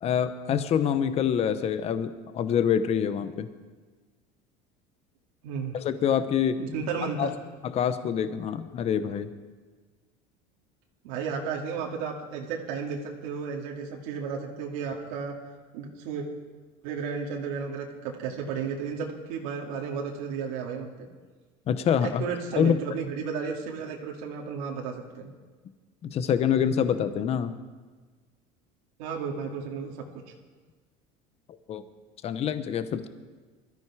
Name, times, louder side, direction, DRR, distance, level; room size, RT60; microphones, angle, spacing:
voice 1, 0.0-3.5 5.7-6.6 7.2-7.3 7.6-9.3 21.7-22.2 22.6-22.7 26.0-27.5 31.7-31.8 32.2-33.1, left 8 dB, 35° left, 11 dB, 0.9 m, -26 dB
voice 2, 5.4-5.8 6.6-7.3 11.0-15.3 15.7-16.3 16.8-21.1 22.2-25.3 29.0-29.9, right 6 dB, 85° right, -1 dB, 2.2 m, -33 dB
21.5 x 13.5 x 4.9 m, 1.4 s
cardioid pair, 140°, 17 cm